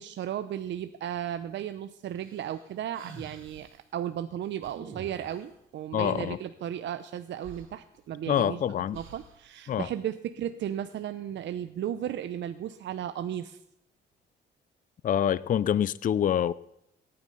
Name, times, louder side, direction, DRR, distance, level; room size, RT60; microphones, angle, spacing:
voice 1, 0.0-3.7 3.9-8.6 8.9-13.6, right 10 dB, 65° right, 0.7 m, -35 dB
sound 1, 2.2-3.8 4.6-5.6 7.1-7.2 7.4-8.4 8.9-9.5, right 5 dB, 85° right, 2.9 m, -47 dB
voice 2, 5.9-6.4 8.3-9.0 9.7-9.9 15.0-16.5, left 9 dB, 45° left, 0.4 m, -26 dB
17.5 x 9.6 x 5.5 m
cardioid pair, 90°, 20 cm